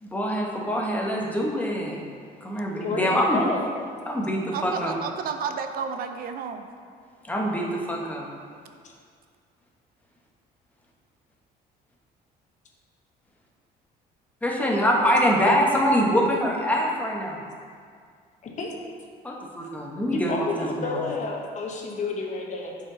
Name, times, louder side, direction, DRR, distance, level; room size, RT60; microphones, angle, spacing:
voice 1, 0.0-2.0 2.4-3.4 4.0-4.9 7.2-8.3 14.4-17.4 19.2-20.3 20.6-21.0, equal, 10° left, -2 dB, 1.1 m, -24 dB
voice 2, 2.8-3.6 8.8-8.9 14.8-15.1 18.4-18.7 20.1-22.8, left 3 dB, 45° left, 0 dB, 1.0 m, -30 dB
voice 3, 4.5-6.7, right 6 dB, 60° right, 7 dB, 0.5 m, -31 dB
7.3 x 4.9 x 3.8 m, 2.1 s
cardioid pair, 110°, 17 cm